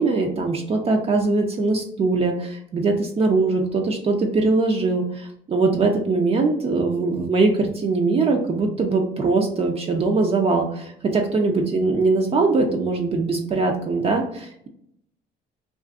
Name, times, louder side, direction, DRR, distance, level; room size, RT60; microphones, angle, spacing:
voice 1, 0.0-14.7, right 3 dB, 35° right, 2 dB, 0.5 m, -21 dB
2.4 x 2.4 x 3.5 m, 0.72 s
cardioid pair, 110°, 17 cm